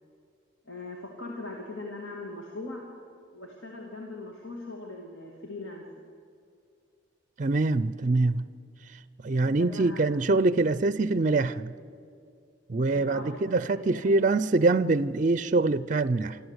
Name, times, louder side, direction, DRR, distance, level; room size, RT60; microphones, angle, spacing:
voice 1, 0.7-2.8 3.3-5.8 9.4-10.3 12.9-14.1, left 2 dB, 70° left, 2.1 m, -40 dB
voice 2, 7.4-8.5 9.2-11.7 12.7-16.4, right 3 dB, 40° right, 0.4 m, -24 dB
25.0 x 13.0 x 8.1 m
head